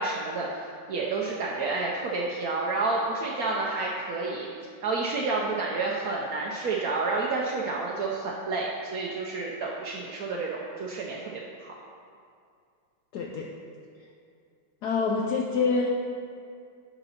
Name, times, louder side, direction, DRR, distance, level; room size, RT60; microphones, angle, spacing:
voice 1, 0.0-4.5 4.8-11.7, right 3 dB, 75° right, -3 dB, 0.8 m, -30 dB
voice 2, 13.1-13.5 14.8-15.9, left 4 dB, 80° left, 0 dB, 0.9 m, -26 dB
9.7 x 4.0 x 5.6 m, 2.3 s
omnidirectional pair, 2.4 m